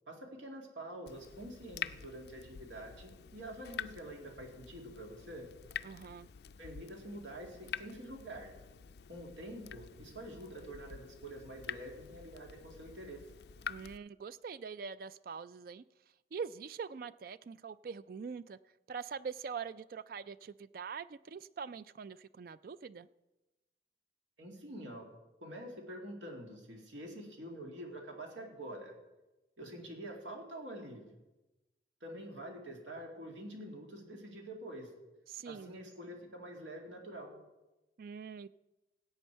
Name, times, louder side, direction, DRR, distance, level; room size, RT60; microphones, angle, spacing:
voice 1, 0.1-5.5 6.6-8.5 9.1-13.2 24.4-25.1 25.4-28.9 29.6-31.2 32.0-34.9 35.4-37.4, right 1 dB, 85° right, 2 dB, 2.2 m, -46 dB
Water tap faucet / Drip, 1.1-14.0, left 7 dB, 60° left, 0.4 m, -47 dB
voice 2, 5.8-6.3 13.7-15.8 16.3-18.6 18.9-23.1 35.3-35.7 38.0-38.5, right 6 dB, 50° right, 17 dB, 0.3 m, -43 dB
16.5 x 8.4 x 4.5 m, 1.1 s
head